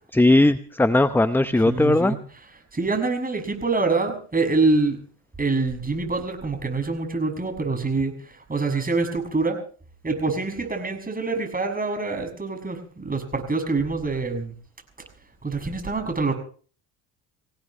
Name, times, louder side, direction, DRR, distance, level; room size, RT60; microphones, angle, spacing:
voice 1, 0.1-2.2, left 2 dB, 5° left, 13 dB, 0.7 m, -18 dB
voice 2, 1.7-2.2 2.7-5.0 5.4-8.1 8.5-9.6 10.0-14.5 15.4-16.3, right 3 dB, 20° right, 5 dB, 6.8 m, -25 dB
25.5 x 17.5 x 3.2 m, 0.43 s
hypercardioid pair, 75°, 48 cm